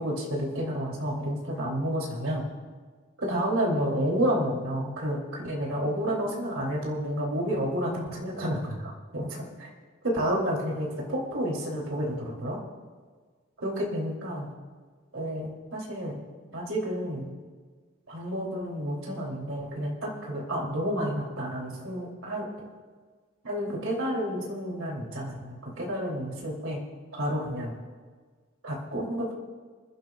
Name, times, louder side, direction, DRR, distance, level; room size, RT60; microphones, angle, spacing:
voice 1, 0.0-2.5 3.2-9.7 10.0-12.6 13.6-14.5 15.1-16.2 16.5-17.3 18.1-22.5 23.4-26.8 27.1-27.8 28.6-29.3, equal, 80° right, -2 dB, 2.9 m, -30 dB
27.5 x 11.5 x 2.3 m, 1.5 s
head